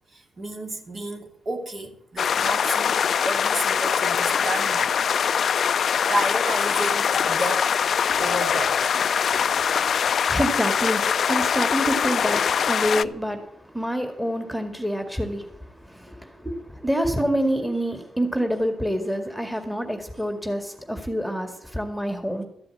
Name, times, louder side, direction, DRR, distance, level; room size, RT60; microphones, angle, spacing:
voice 1, 0.1-4.9 5.3-5.6 6.1-7.9 8.2-9.0, right 1 dB, 45° right, 2.9 m, -31 dB
sound 1, 2.2-13.0, left 7 dB, 60° left, 0.4 m, -23 dB
voice 2, 9.1-22.4, equal, ahead, 2.1 m, -27 dB
13.5 x 7.7 x 8.5 m
cardioid pair, 80°, 0 cm